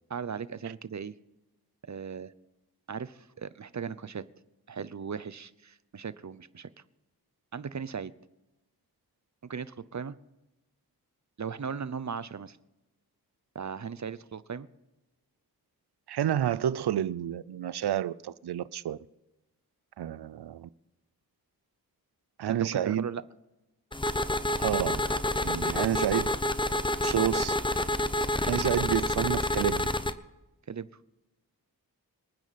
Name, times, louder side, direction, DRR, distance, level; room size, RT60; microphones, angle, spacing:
voice 1, 0.1-1.1 1.9-2.3 2.9-4.2 4.7-6.7 7.5-8.1 9.5-10.2 11.4-12.6 13.5-14.7 22.5-23.2 30.7-30.9, right 6 dB, 45° right, 0.7 m, -37 dB
voice 2, 16.1-19.0 20.0-20.7 22.4-23.1 24.6-25.0 25.4-26.3 27.0-27.6 28.4-29.9, right 10 dB, 85° right, 0.5 m, -29 dB
sound 1, 23.9-30.1, left 1 dB, 15° left, 0.8 m, -28 dB
27.0 x 9.4 x 4.2 m
cardioid pair, 50°, 38 cm